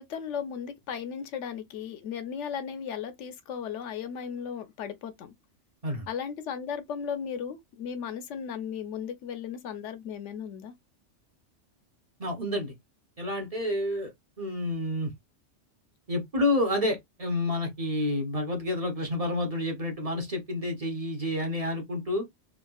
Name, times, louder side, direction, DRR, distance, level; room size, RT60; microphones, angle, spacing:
voice 1, 0.0-5.3 6.1-10.7, left 7 dB, 85° left, 1.0 m, -36 dB
voice 2, 12.2-12.7 13.2-14.1 14.4-15.1 16.1-22.3, left 1 dB, 35° right, 0.8 m, -29 dB
3.6 x 2.3 x 2.3 m
omnidirectional pair, 1.2 m